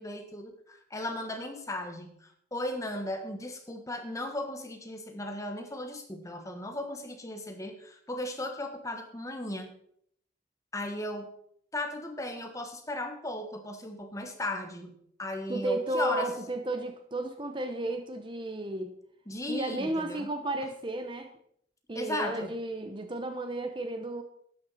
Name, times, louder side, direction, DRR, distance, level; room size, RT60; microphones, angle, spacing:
voice 1, 0.0-9.8 10.7-11.3 11.7-16.3 19.3-20.3 21.9-22.5, left 1 dB, 15° left, 5 dB, 1.4 m, -36 dB
voice 2, 15.5-18.9 19.5-21.3 21.9-24.2, right 1 dB, 25° right, 7 dB, 0.8 m, -33 dB
12.5 x 9.3 x 4.2 m, 0.67 s
head